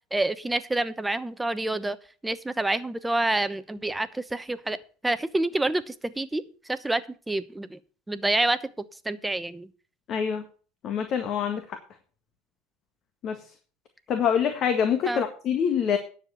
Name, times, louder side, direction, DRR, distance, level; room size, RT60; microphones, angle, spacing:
voice 1, 0.1-2.0 2.2-4.8 5.0-6.4 6.7-7.8 8.1-8.6 9.0-9.7 15.1-15.2, right 2 dB, 10° right, 13 dB, 1.0 m, -27 dB
voice 2, 10.1-10.4 10.8-11.8 13.2-13.3 14.1-16.0, left 7 dB, 45° left, 7 dB, 1.7 m, -25 dB
10.0 x 7.3 x 7.0 m, 0.39 s
hypercardioid pair, 75°, 0 cm